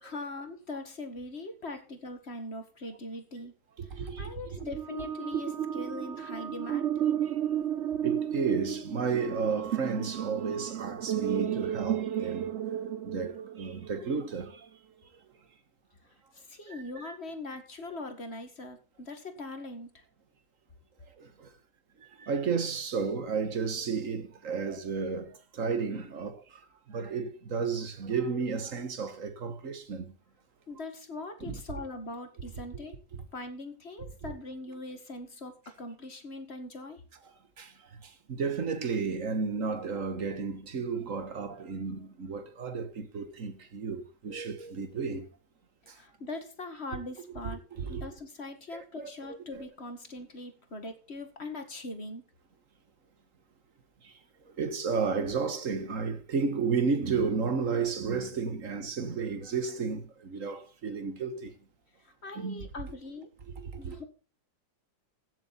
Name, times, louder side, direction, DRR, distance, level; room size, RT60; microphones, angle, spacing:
voice 1, 0.0-3.5 3.9-6.9 16.0-20.0 30.7-33.0 33.3-37.0 45.9-47.6 47.9-52.2 62.0-63.3 63.8-64.0, left 2 dB, 35° left, 2.1 m, -41 dB
voice 2, 3.8-4.6 7.3-7.4 8.0-12.5 13.0-14.7 16.7-17.2 21.2-21.5 22.0-26.6 26.9-30.1 31.4-31.6 37.6-45.3 45.9-46.0 47.4-48.1 48.7-49.7 54.0-54.1 54.5-61.6 62.3-62.7 63.6-64.0, right 5 dB, 45° right, 1.7 m, -33 dB
sound 1, 4.6-14.0, right 10 dB, 65° right, 0.7 m, -33 dB
16.0 x 7.9 x 4.2 m
omnidirectional pair, 2.0 m